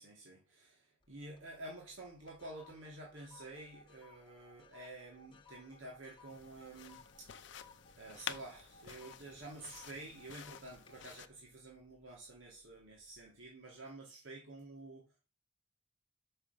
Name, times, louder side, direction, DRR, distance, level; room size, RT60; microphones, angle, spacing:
voice 1, 0.0-7.7 8.0-15.3, right 2 dB, 70° right, 2.6 m, -50 dB
sound 1, 1.0-1.5 1.9-12.4 12.9-13.2, left 4 dB, 25° left, 1.3 m, -61 dB
sound 2, 6.3-11.3, left 9 dB, 60° left, 0.6 m, -50 dB
6.1 x 6.0 x 6.7 m
head